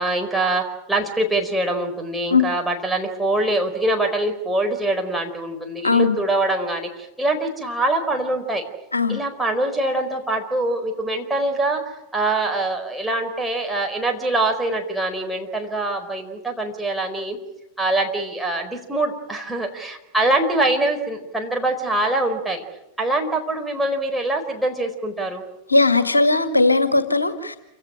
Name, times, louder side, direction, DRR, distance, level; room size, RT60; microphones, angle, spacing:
voice 1, 0.0-8.6 9.1-11.8 12.1-17.4 17.8-22.6 23.0-25.4, right 2 dB, 5° right, 2 dB, 4.5 m, -24 dB
voice 2, 5.8-6.2 8.9-9.2 25.7-27.6, left 3 dB, 80° left, 9 dB, 2.0 m, -18 dB
28.5 x 17.0 x 9.9 m, 0.89 s
figure-of-eight pair, 90°, 0 cm